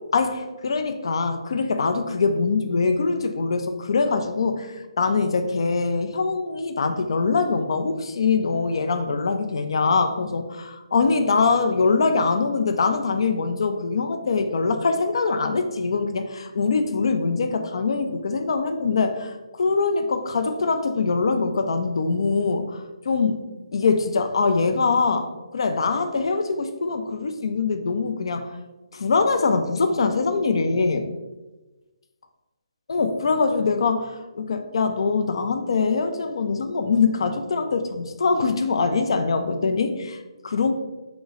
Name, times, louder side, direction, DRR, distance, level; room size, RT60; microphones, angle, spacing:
voice 1, 0.1-28.5 28.9-31.1 32.9-40.7, left 4 dB, 60° left, 7 dB, 0.4 m, -23 dB
3.1 x 3.0 x 3.6 m, 1.1 s
figure-of-eight pair, 145°, 3 cm